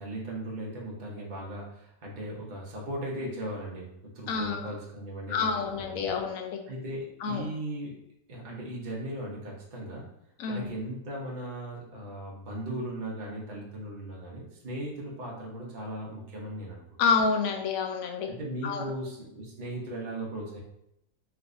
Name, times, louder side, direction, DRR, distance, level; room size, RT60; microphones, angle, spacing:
voice 1, 0.0-6.1 6.7-7.9 8.3-10.1 10.4-16.8 18.3-20.6, right 1 dB, 40° right, -3 dB, 0.8 m, -37 dB
voice 2, 4.3-4.7 5.3-6.6 7.2-7.5 10.4-10.7 17.0-18.3 18.6-18.9, left 5 dB, 80° left, 3 dB, 1.0 m, -28 dB
3.3 x 3.2 x 2.5 m, 0.82 s
omnidirectional pair, 1.4 m